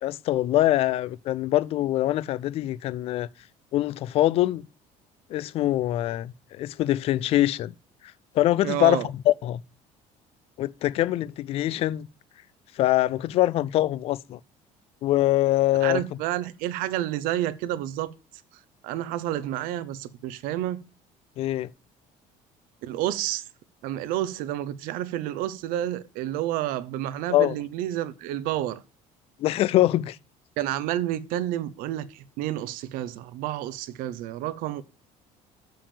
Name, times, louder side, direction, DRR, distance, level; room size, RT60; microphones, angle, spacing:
voice 1, 0.0-3.3 3.7-4.6 5.3-7.7 8.3-9.6 10.6-12.1 12.8-14.4 15.0-16.0 21.4-21.7 27.3-27.5 29.4-30.2, left 14 dB, 45° left, 0.4 m, -23 dB
voice 2, 8.6-9.1 15.8-18.1 18.8-20.8 22.8-23.4 23.8-28.8 30.6-34.8, right 13 dB, 80° right, 0.9 m, -30 dB
7.2 x 5.6 x 6.8 m
cardioid pair, 170°, 14 cm